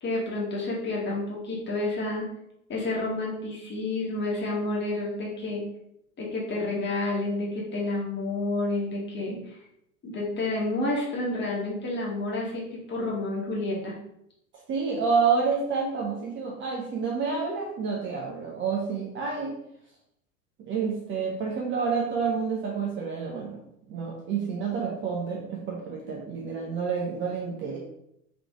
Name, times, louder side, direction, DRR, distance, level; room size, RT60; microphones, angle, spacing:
voice 1, 0.0-2.3 2.7-5.6 6.2-9.6 10.0-14.0, left 2 dB, 25° left, -3 dB, 1.4 m, -30 dB
voice 2, 14.7-19.5 20.6-27.8, right 5 dB, 25° right, -1 dB, 0.6 m, -29 dB
3.4 x 3.1 x 3.6 m, 0.78 s
figure-of-eight pair, 80°, 45 cm